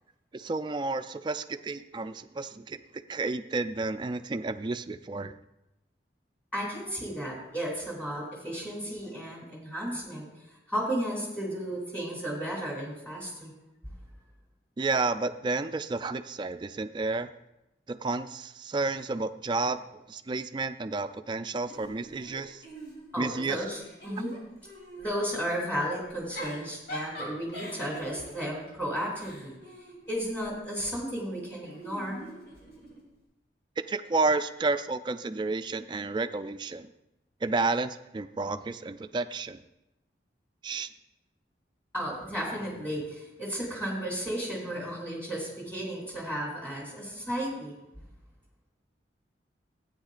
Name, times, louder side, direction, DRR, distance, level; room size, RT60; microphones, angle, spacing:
voice 1, 0.3-5.3 14.8-17.3 17.9-19.8 20.1-22.6 23.2-23.6 33.9-36.9 37.4-39.6 40.6-40.9, right 3 dB, 25° right, 10 dB, 0.3 m, -31 dB
voice 2, 6.5-10.3 10.7-13.5 23.1-24.3 25.0-29.6 30.1-32.2 41.9-47.7, equal, 10° left, -3 dB, 2.5 m, -34 dB
Giggle / Chuckle chortle, 21.7-23.3 23.7-25.1 26.1-30.6 31.6-33.0, equal, 80° left, 3.1 m, -43 dB
13.0 x 9.1 x 2.5 m, 0.91 s
head